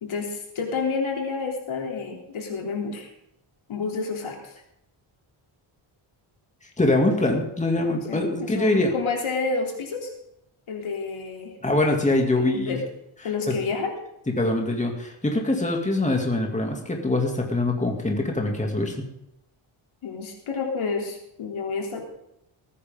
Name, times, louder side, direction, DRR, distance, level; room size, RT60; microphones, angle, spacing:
voice 1, 0.0-3.1 3.7-4.5 8.1-10.1 10.7-11.5 12.4-12.8 13.2-13.9 20.0-22.0, left 4 dB, 75° left, 1 dB, 3.3 m, -29 dB
voice 2, 6.8-8.9 11.6-12.8 14.4-19.0, left 2 dB, 15° left, 2 dB, 2.5 m, -23 dB
19.0 x 9.8 x 3.8 m, 0.80 s
cardioid pair, 100°, 49 cm